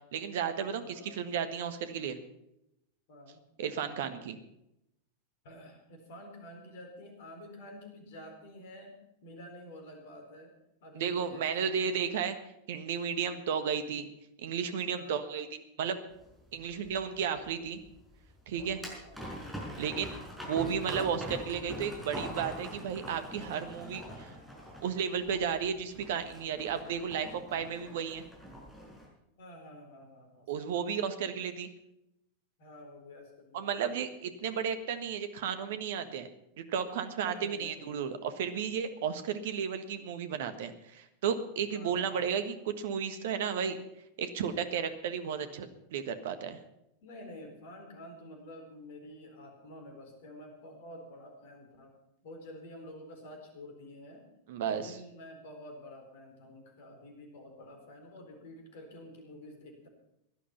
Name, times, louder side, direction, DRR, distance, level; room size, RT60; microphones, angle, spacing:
voice 1, 0.1-2.2 3.6-4.4 10.9-12.4 12.7-14.1 14.4-15.5 15.8-16.0 16.5-17.8 18.5-18.8 19.8-20.1 20.4-24.3 24.8-28.2 30.5-31.7 33.5-36.3 36.6-43.8 44.2-46.6 54.5-54.9, right 7 dB, 55° right, 10 dB, 1.4 m, -33 dB
voice 2, 0.7-1.2 3.1-3.4 5.4-9.0 9.2-10.5 10.8-12.0 14.9-15.4 16.6-16.8 19.0-19.4 29.4-30.8 32.6-34.0 37.2-38.2 39.0-39.2 41.7-42.3 47.0-51.9 52.2-54.3 54.6-59.9, left 1 dB, 55° left, 4 dB, 4.2 m, -49 dB
sound 1, 16.1-29.1, equal, ahead, 5.7 m, -44 dB
16.5 x 11.5 x 5.8 m, 0.83 s
figure-of-eight pair, 90°, 0 cm